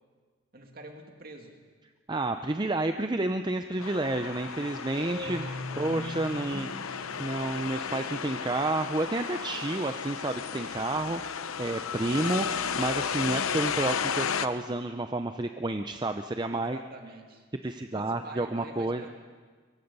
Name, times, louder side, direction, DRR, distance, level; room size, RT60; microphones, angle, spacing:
voice 1, 0.5-1.6 4.9-6.1 16.5-17.5 17.8-19.1, right 1 dB, 45° right, 3 dB, 2.4 m, -45 dB
voice 2, 2.1-5.4 5.8-16.8 17.6-19.1, right 2 dB, 20° right, 7 dB, 0.5 m, -30 dB
sound 1, 3.8-14.5, left 7 dB, 90° left, 0.8 m, -34 dB
Guitar, 5.3-8.5, left 1 dB, 50° left, 3.8 m, -41 dB
23.5 x 23.0 x 5.5 m, 1.5 s
head